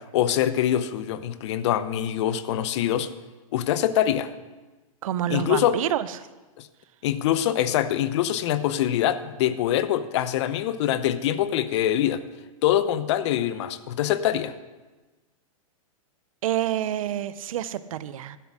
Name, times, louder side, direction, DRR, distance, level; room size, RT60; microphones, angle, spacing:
voice 1, 0.0-3.1 3.5-4.3 5.3-5.8 6.6-6.7 7.0-12.2 12.6-14.5, left 11 dB, 55° left, 14 dB, 0.6 m, -24 dB
voice 2, 5.0-6.3 16.4-18.4, right 11 dB, 70° right, 15 dB, 0.6 m, -28 dB
12.0 x 7.0 x 6.3 m, 1.2 s
hypercardioid pair, 145°, 18 cm